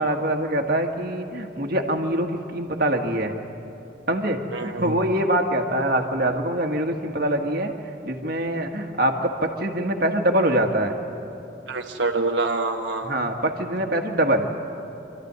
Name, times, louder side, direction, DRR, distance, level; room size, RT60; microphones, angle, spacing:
voice 1, 0.0-3.4 4.1-7.7 8.0-11.0 13.0-14.5, right 1 dB, 50° right, 3 dB, 1.7 m, -24 dB
voice 2, 4.5-5.1 11.7-13.1, right 3 dB, 80° right, 1 dB, 1.1 m, -26 dB
26.0 x 14.0 x 9.5 m, 2.9 s
head